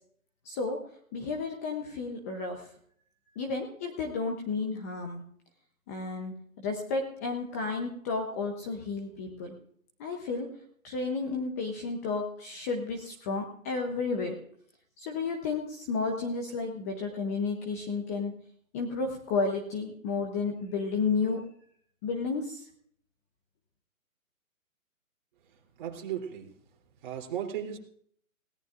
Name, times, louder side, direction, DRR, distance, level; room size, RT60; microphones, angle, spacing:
voice 1, 0.4-2.7 3.4-5.2 5.9-9.6 10.0-10.5 10.8-14.4 15.0-18.3 18.7-21.4 22.0-22.6, left 4 dB, 10° left, 2 dB, 0.7 m, -32 dB
voice 2, 25.5-26.5 27.0-27.8, right 9 dB, 35° right, 0 dB, 3.2 m, -36 dB
20.5 x 17.0 x 2.5 m, 0.63 s
hypercardioid pair, 155°, 42 cm